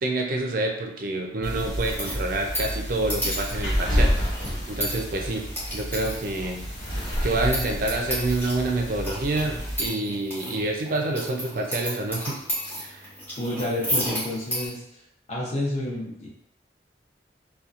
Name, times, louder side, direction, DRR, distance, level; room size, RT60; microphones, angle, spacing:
voice 1, 0.0-4.1 4.7-5.4 5.7-6.6 7.2-12.4 12.8-13.0, right 2 dB, 50° right, 1 dB, 0.4 m, -27 dB
sound 1, 1.4-9.9, equal, 90° left, 1.2 m, -29 dB
sound 2, 1.8-14.7, equal, 10° left, 1.1 m, -34 dB
voice 2, 13.4-15.0 15.3-16.3, left 1 dB, 40° left, -4 dB, 0.7 m, -30 dB
2.8 x 2.2 x 2.4 m, 0.78 s
head